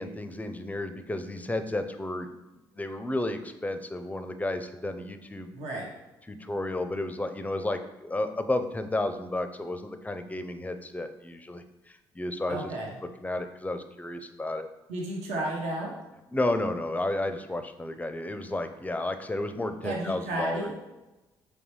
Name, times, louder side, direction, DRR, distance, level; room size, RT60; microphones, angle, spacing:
voice 1, 0.0-2.3 2.7-5.5 6.3-12.7 13.2-14.7 16.3-20.7, left 2 dB, 15° left, 8 dB, 0.4 m, -32 dB
voice 2, 5.5-5.9 12.5-12.9 14.9-15.9 19.8-20.7, right 1 dB, 75° right, -2 dB, 0.8 m, -32 dB
4.0 x 3.2 x 3.1 m, 1.0 s
hypercardioid pair, 55°, 11 cm